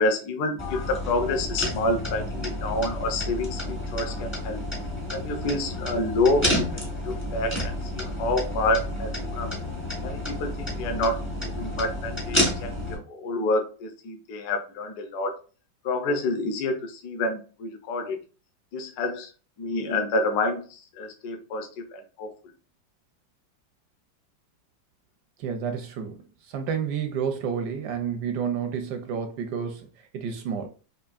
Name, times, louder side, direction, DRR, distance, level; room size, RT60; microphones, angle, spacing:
voice 1, 0.0-4.6 5.1-9.5 10.0-11.2 11.4-15.4 15.8-18.2 18.7-19.3 19.6-22.3, left 2 dB, 65° left, 1.2 m, -28 dB
sound 1, 0.6-13.0, left 1 dB, 15° left, 0.4 m, -30 dB
voice 2, 25.4-29.9 30.1-30.7, right 7 dB, 75° right, 1.0 m, -30 dB
4.6 x 2.7 x 2.4 m
omnidirectional pair, 2.1 m